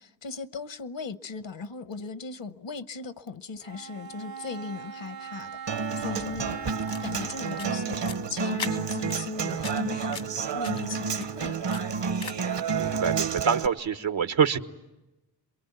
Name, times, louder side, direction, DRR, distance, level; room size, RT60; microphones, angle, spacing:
voice 1, 0.0-5.5 6.0-6.6 7.0-8.0 8.3-12.0, left 4 dB, 70° left, 1.1 m, -38 dB
Bowed string instrument, 3.6-8.0, right 7 dB, 55° right, 0.9 m, -41 dB
Human voice / Acoustic guitar, 5.7-13.7, right 5 dB, 70° right, 1.2 m, -30 dB
sound 1, 6.7-12.6, left 6 dB, 90° left, 2.2 m, -42 dB
voice 2, 12.7-14.6, right 7 dB, 85° right, 1.5 m, -25 dB
28.0 x 22.5 x 9.3 m
wide cardioid pair, 75°, 45 cm